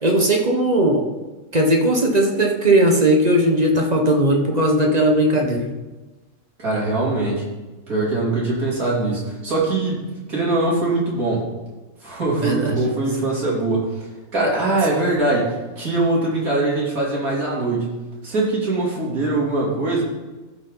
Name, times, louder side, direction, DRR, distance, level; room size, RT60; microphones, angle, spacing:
voice 1, 0.0-1.1 1.5-5.6 12.4-12.8, right 1 dB, 30° right, 0 dB, 1.3 m, -18 dB
voice 2, 6.6-7.4 7.9-10.0 10.3-11.4 12.0-13.8 14.3-17.9 18.2-20.0, right 2 dB, 75° right, -6 dB, 3.6 m, -22 dB
15.0 x 5.7 x 3.9 m, 1.2 s
omnidirectional pair, 1.5 m